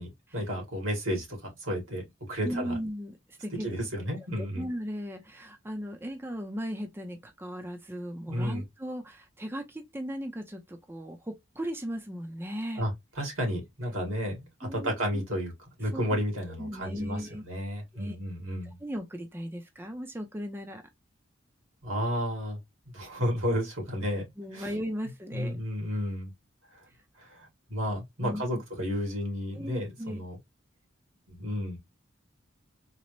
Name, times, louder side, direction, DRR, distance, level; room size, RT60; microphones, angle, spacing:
voice 1, 0.0-2.8 3.6-4.6 8.3-8.6 12.8-15.5 15.8-18.8 21.8-22.6 22.9-24.7 25.3-26.3 26.7-26.8 27.2-30.4 31.3-31.8, equal, 90° right, 2.1 m, -32 dB
voice 2, 2.4-3.8 4.4-12.8 14.6-14.9 15.9-16.0 16.6-17.4 17.9-18.2 18.6-20.8 24.4-25.6 26.9-27.0 28.2-28.4 29.5-30.2, equal, 10° right, 0.4 m, -37 dB
3.9 x 2.0 x 3.0 m
head